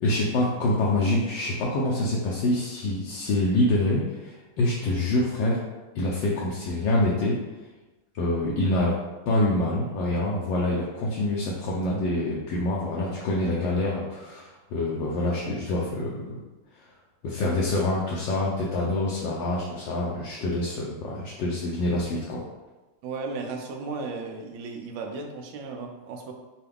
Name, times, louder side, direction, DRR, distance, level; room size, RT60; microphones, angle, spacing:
voice 1, 0.0-5.6 5.9-7.4 8.2-9.0 9.3-16.4 17.2-22.4, left 1 dB, 70° left, -4 dB, 1.2 m, -26 dB
voice 2, 23.0-26.3, right 4 dB, 80° right, 2 dB, 1.4 m, -35 dB
5.6 x 2.3 x 3.4 m, 1.1 s
omnidirectional pair, 2.2 m